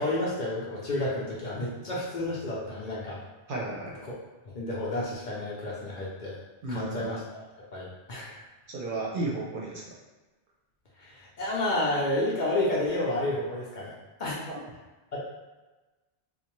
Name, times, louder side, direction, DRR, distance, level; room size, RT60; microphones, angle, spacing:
voice 1, 0.0-3.2 4.5-6.4 6.7-7.4 7.7-8.4 11.0-13.9 14.2-14.4 15.1-15.2, left 1 dB, 55° left, -5 dB, 0.6 m, -30 dB
voice 2, 3.5-4.0 6.6-7.1 8.7-9.8 14.4-14.6, right 2 dB, 60° right, -3 dB, 0.7 m, -33 dB
2.6 x 2.1 x 2.9 m, 1.2 s
omnidirectional pair, 1.1 m